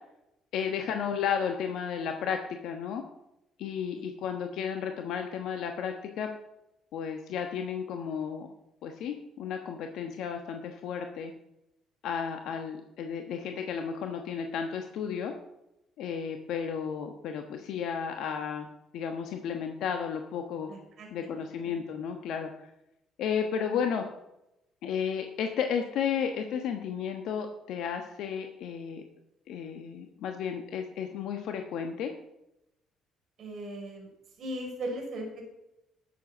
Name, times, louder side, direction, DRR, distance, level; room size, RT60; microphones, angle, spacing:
voice 1, 0.5-3.0 3.6-6.3 6.9-8.5 8.8-11.3 12.0-15.3 16.0-18.7 18.9-20.7 21.1-22.7 23.2-24.0 24.8-29.0 29.5-32.1, left 7 dB, 65° left, 5 dB, 1.2 m, -33 dB
voice 2, 20.7-21.1 21.7-21.8 33.4-34.1 34.4-35.4, right 1 dB, 55° right, 1 dB, 4.4 m, -37 dB
12.5 x 7.4 x 7.1 m, 0.88 s
hypercardioid pair, 55°, 0 cm